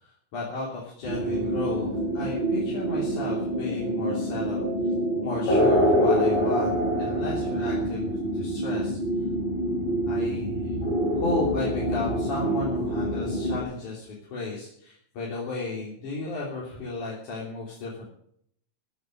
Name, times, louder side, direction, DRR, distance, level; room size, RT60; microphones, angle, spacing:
voice 1, 0.0-4.7 5.2-9.0 10.1-10.8 11.1-18.1, left 2 dB, 85° left, -4 dB, 4.8 m, -34 dB
sound 1, 1.0-13.6, equal, 60° left, 5.8 m, -26 dB
16.0 x 7.4 x 8.6 m, 0.66 s
omnidirectional pair, 3.4 m